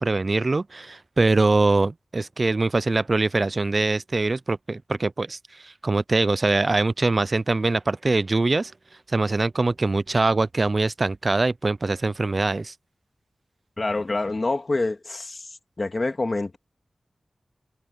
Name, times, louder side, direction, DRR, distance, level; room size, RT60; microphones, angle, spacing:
voice 1, 0.0-8.7 9.1-12.7, right 3 dB, 40° right, 0.3 m, -23 dB
voice 2, 13.8-15.5 15.8-16.6, left 2 dB, 35° left, 1.7 m, -26 dB
wide cardioid pair, 115°, 0 cm